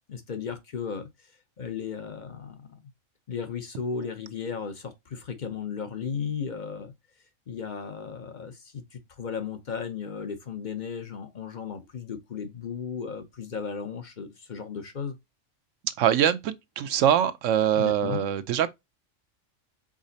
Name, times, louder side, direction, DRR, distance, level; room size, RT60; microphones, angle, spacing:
voice 1, 0.1-1.3 1.6-2.8 3.3-6.9 7.5-15.2 17.7-18.2, left 6 dB, 45° left, 0.7 m, -35 dB
voice 2, 16.0-18.7, right 9 dB, 75° right, 0.9 m, -23 dB
5.0 x 3.9 x 2.7 m
omnidirectional pair, 1.3 m